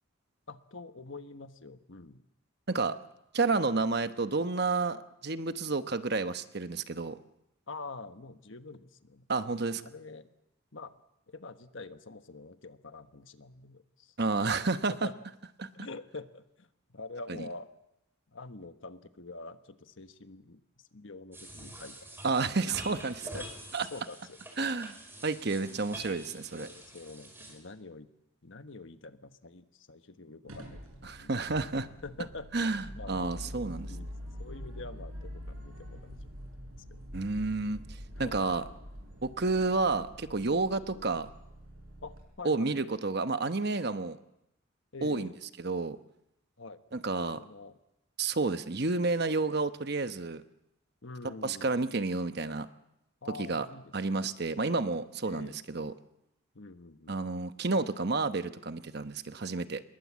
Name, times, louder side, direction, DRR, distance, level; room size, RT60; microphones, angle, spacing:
voice 1, 0.5-2.2 7.7-9.2 9.8-10.3 10.7-11.0 11.3-14.1 14.9-15.1 15.7-17.7 18.3-22.8 23.3-23.5 23.9-24.7 26.5-28.1 28.4-31.4 32.0-32.5 32.9-33.3 33.8-34.1 34.4-36.3 36.9-37.3 38.1-38.5 40.9-41.2 42.0-42.8 44.9-45.4 46.6-46.8 47.2-47.7 51.0-51.7 53.2-54.3 54.6-54.8 55.2-55.6 56.5-57.2 57.8-57.9, left 3 dB, 60° left, 9 dB, 1.3 m, -46 dB
voice 2, 2.7-3.0 3.3-7.2 9.3-9.8 14.2-15.1 15.6-15.7 22.2-23.3 23.7-23.9 24.6-24.9 25.2-26.7 31.0-31.9 32.5-33.9 37.1-38.7 39.2-41.3 42.4-44.2 45.0-45.3 45.6-46.0 46.9-47.4 48.2-50.4 51.2-52.7 53.4-53.7 53.9-55.9 57.1-59.8, right 3 dB, 50° right, 10 dB, 1.0 m, -30 dB
sound 1, 21.3-27.5, right 1 dB, 10° right, 5.3 m, -46 dB
sound 2, 30.5-42.2, equal, 75° right, 7.4 m, -45 dB
27.5 x 21.5 x 7.5 m, 0.84 s
head